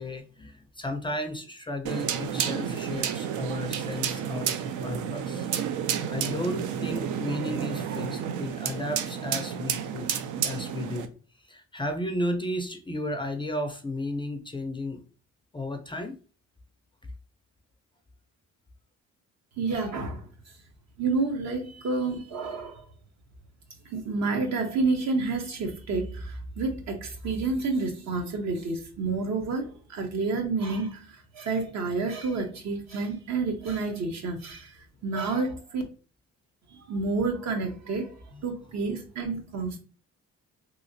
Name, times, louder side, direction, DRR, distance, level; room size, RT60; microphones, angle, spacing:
voice 1, 0.0-5.5 6.1-11.1 11.5-15.0 15.5-16.2 38.3-38.4, left 1 dB, 15° left, 0.4 m, -34 dB
sound 1, 1.9-11.1, right 8 dB, 75° right, 0.5 m, -31 dB
voice 2, 19.6-20.2 21.0-22.8 23.9-31.0 31.4-34.7 35.0-35.8 36.9-38.1 38.4-39.8, right 3 dB, 60° right, 0.9 m, -29 dB
3.0 x 2.8 x 2.6 m
cardioid pair, 90°, 30 cm